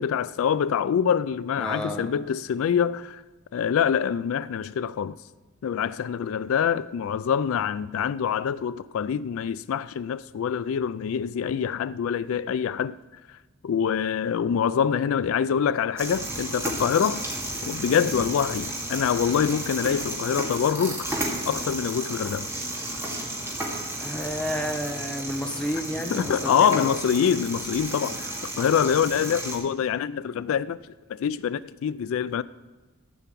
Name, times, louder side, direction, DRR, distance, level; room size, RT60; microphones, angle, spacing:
voice 1, 0.0-3.2 3.5-5.2 5.6-13.0 13.6-17.2 17.6-21.1 21.5-22.5 26.1-30.8 31.1-32.4, left 7 dB, 75° left, 0.3 m, -25 dB
voice 2, 1.6-2.1 18.0-18.2 24.0-27.0, equal, 5° left, 1.1 m, -31 dB
sound 1, 16.0-29.6, right 1 dB, 10° right, 2.2 m, -33 dB
13.5 x 5.7 x 8.3 m
head